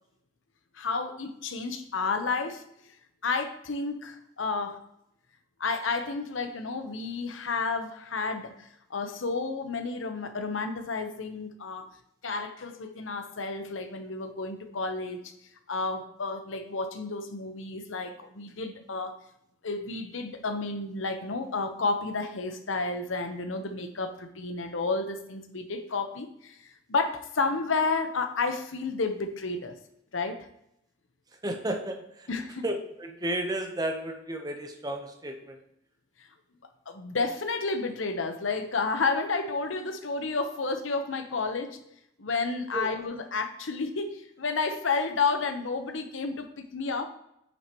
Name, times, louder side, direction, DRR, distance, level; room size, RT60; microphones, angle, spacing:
voice 1, 0.7-2.6 3.2-4.8 5.6-11.9 12.2-15.3 15.7-19.2 19.6-29.8 30.1-30.5 32.3-32.6 36.9-41.8 42.2-46.5 46.7-47.1, left 4 dB, 75° left, 7 dB, 0.9 m, -31 dB
voice 2, 31.4-32.3 32.6-35.6 42.7-42.9, right 1 dB, 20° right, 5 dB, 0.8 m, -33 dB
8.7 x 6.0 x 3.0 m, 0.77 s
head